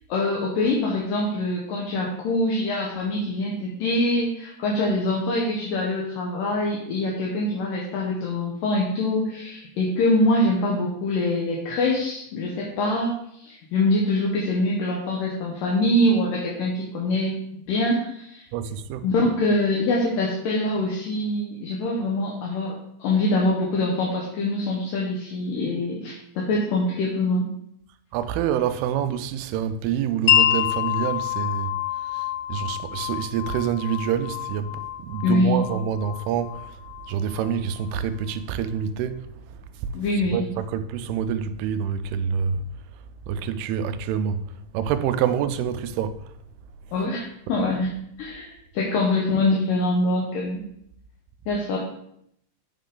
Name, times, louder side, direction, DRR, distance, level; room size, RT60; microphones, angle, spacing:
voice 1, 0.1-17.4 17.7-18.5 19.0-27.5 35.2-35.7 39.9-40.5 46.9-50.6 51.5-51.8, left 1 dB, 70° left, 2.5 m, -24 dB
voice 2, 18.5-19.1 28.1-31.8 32.1-36.8 37.1-39.3 39.8-39.9 40.3-42.6 43.3-44.4 44.7-46.2, right 8 dB, 90° right, 2.5 m, -27 dB
Wind chime, 30.3-37.9, left 11 dB, 90° left, 1.7 m, -27 dB
8.9 x 4.6 x 3.8 m
omnidirectional pair, 4.5 m